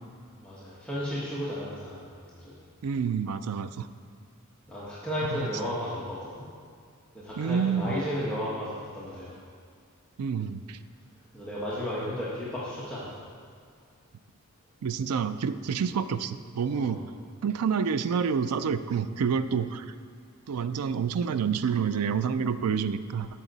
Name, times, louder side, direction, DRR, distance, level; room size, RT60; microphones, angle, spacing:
voice 1, 0.4-2.6 4.7-6.4 7.1-9.4 11.3-13.2 16.7-17.0, equal, 5° left, -9 dB, 1.1 m, -34 dB
voice 2, 2.8-3.9 7.4-8.0 10.2-10.8 14.8-17.0 17.4-19.9 20.5-23.4, right 6 dB, 90° right, 12 dB, 0.4 m, -28 dB
13.0 x 5.8 x 4.0 m, 2.1 s
head